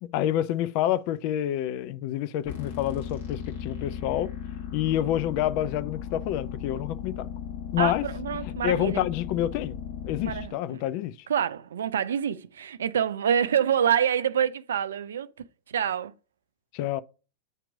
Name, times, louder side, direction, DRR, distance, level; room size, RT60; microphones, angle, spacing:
voice 1, 0.0-4.3 4.7-7.3 7.7-8.1 8.4-9.8 10.0-11.3 16.7-17.0, left 12 dB, 45° left, 0.4 m, -28 dB
sound 1, 2.4-10.5, left 8 dB, 60° left, 1.6 m, -36 dB
voice 2, 7.8-9.0 10.2-10.8 11.3-15.3 15.7-16.1, right 8 dB, 65° right, 0.4 m, -26 dB
8.0 x 3.0 x 5.0 m
figure-of-eight pair, 95°, 0 cm